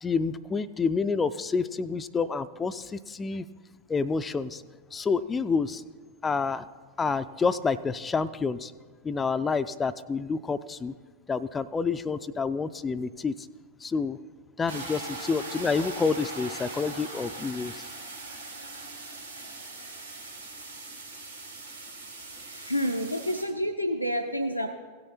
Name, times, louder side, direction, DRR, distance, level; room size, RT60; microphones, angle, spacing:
voice 1, 0.0-3.5 3.9-4.6 4.9-5.8 6.2-6.7 7.0-8.7 9.0-10.9 11.3-13.3 13.8-14.2 14.6-17.9, left 4 dB, 15° left, 12 dB, 0.3 m, -28 dB
sound 1, 14.7-23.4, right 2 dB, 85° right, 2.1 m, -40 dB
voice 2, 22.4-24.7, equal, 90° left, 4 dB, 0.5 m, -29 dB
16.5 x 6.6 x 4.3 m, 1.5 s
figure-of-eight pair, 90°, 0 cm